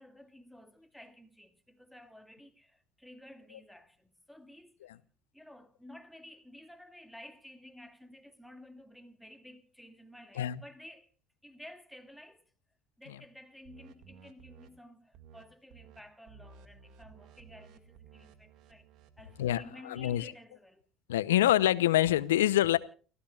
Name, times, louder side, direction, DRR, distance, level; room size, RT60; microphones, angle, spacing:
voice 1, 0.0-5.0 5.3-11.1 11.4-12.4 13.0-18.9 19.2-20.8, left 1 dB, ahead, 2.3 m, -53 dB
sound 1, 13.6-14.7 15.1-15.4 15.7-16.0 16.3-19.6, right 6 dB, 60° right, 2.1 m, -56 dB
voice 2, 19.4-20.3 21.1-22.8, left 13 dB, 80° left, 0.7 m, -26 dB
30.0 x 15.5 x 2.4 m
hypercardioid pair, 65°, 0 cm